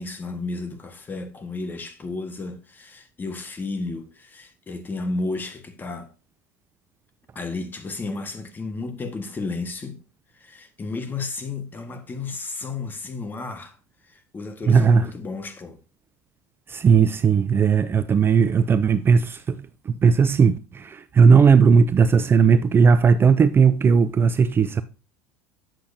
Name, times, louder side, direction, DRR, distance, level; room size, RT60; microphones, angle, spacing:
voice 1, 0.0-6.1 7.3-10.0 10.3-13.8 14.0-15.8, left 3 dB, 25° left, 1.5 m, -32 dB
voice 2, 14.7-15.0 16.7-19.6 19.9-24.8, right 6 dB, 25° right, 0.5 m, -17 dB
8.9 x 7.4 x 2.7 m
hypercardioid pair, 95°, 8 cm